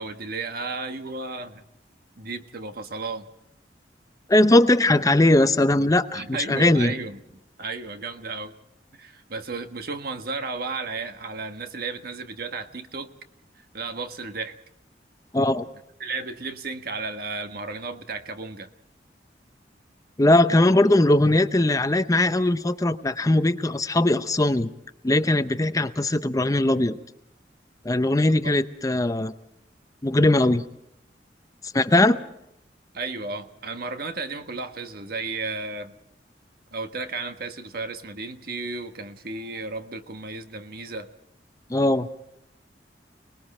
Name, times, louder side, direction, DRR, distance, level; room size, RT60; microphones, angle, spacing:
voice 1, 0.0-1.6 2.2-3.3 6.1-8.5 8.9-13.1 13.7-14.5 16.0-18.7 32.9-35.9 36.7-41.1, right 3 dB, 55° right, 7 dB, 1.5 m, -33 dB
voice 2, 4.3-6.9 15.3-15.7 20.2-24.7 25.0-27.0 27.8-29.3 30.0-30.6 31.7-32.2 41.7-42.1, left 1 dB, 20° left, 11 dB, 0.7 m, -20 dB
30.0 x 20.5 x 4.3 m, 0.80 s
head